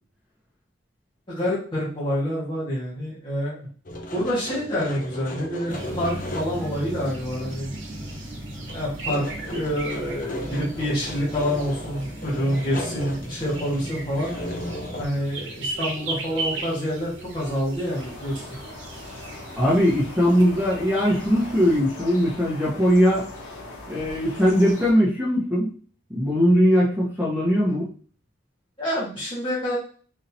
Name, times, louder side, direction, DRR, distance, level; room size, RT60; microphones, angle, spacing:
voice 1, 1.3-3.7 4.1-7.7 8.7-14.3 15.0-18.4 28.8-29.8, equal, 25° left, -8 dB, 1.3 m, -27 dB
sound 1, 3.9-6.7 7.0-7.1 7.5-8.3 8.5-15.0, left 1 dB, 40° left, 0.6 m, -36 dB
sound 2, 5.7-21.8, right 1 dB, 65° right, 1.1 m, -36 dB
sound 3, 17.9-24.9, left 2 dB, 85° left, 1.4 m, -40 dB
voice 2, 19.6-23.2 23.9-25.7 26.1-27.8, equal, 10° right, -7 dB, 1.1 m, -20 dB
4.1 x 2.9 x 2.8 m, 0.41 s
head